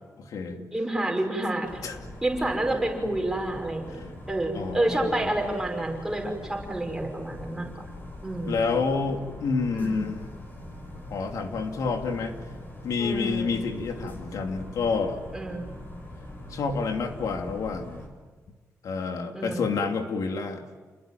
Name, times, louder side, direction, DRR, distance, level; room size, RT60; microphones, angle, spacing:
voice 1, 0.2-0.6 1.8-2.0 3.9-4.1 4.5-5.3 8.5-10.2 11.1-12.4 12.8-15.2 16.5-18.1 18.8-20.6, left 4 dB, 85° left, 4 dB, 2.8 m, -29 dB
voice 2, 0.7-1.8 2.2-4.0 4.3-7.7 8.2-8.6 9.7-10.1 13.0-13.5 15.3-15.7 19.3-19.6, right 1 dB, 10° right, 1 dB, 5.5 m, -29 dB
sound 1, 1.6-18.1, left 1 dB, 35° left, 6.0 m, -42 dB
30.0 x 21.5 x 9.2 m, 1.4 s
wide cardioid pair, 165°, 6 cm